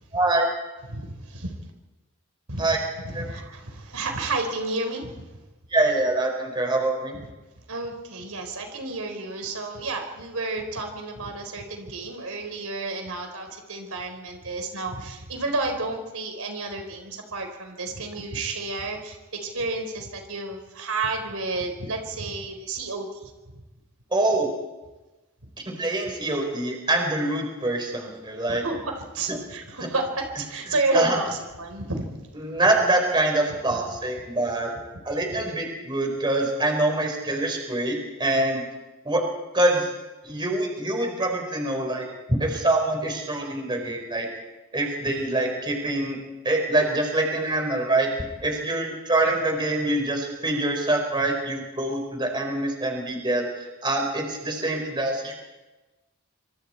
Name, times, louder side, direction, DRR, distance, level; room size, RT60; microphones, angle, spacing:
voice 1, 0.1-0.4 2.6-2.8 3.1-3.2 5.7-7.2 24.1-24.5 25.7-28.6 29.3-29.4 30.9-31.2 32.4-34.7 35.0-38.6 39.0-39.2 39.5-39.9 40.2-44.3 44.7-46.2 46.4-48.1 48.4-55.3, right 2 dB, 20° right, 2 dB, 4.5 m, -25 dB
voice 2, 0.9-1.5 2.5-2.8 3.0-5.2 7.7-23.3 28.5-32.1 35.3-35.4, right 3 dB, 75° right, 4 dB, 4.1 m, -31 dB
27.0 x 25.5 x 4.5 m, 1.1 s
head